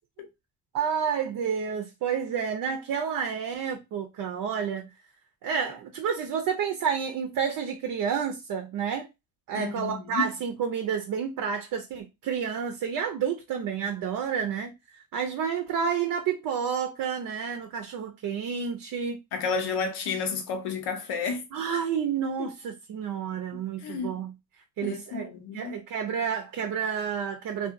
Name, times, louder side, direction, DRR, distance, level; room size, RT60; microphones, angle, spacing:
voice 1, 0.7-4.9 5.4-9.1 9.5-19.2 21.5-24.3 24.8-25.3 25.5-27.7, right 7 dB, 60° right, 0.6 m, -30 dB
voice 2, 9.5-10.3 19.3-21.4 23.8-24.2 24.8-25.8, left 5 dB, 80° left, 0.8 m, -31 dB
2.6 x 2.4 x 2.4 m
supercardioid pair, 70°, 38 cm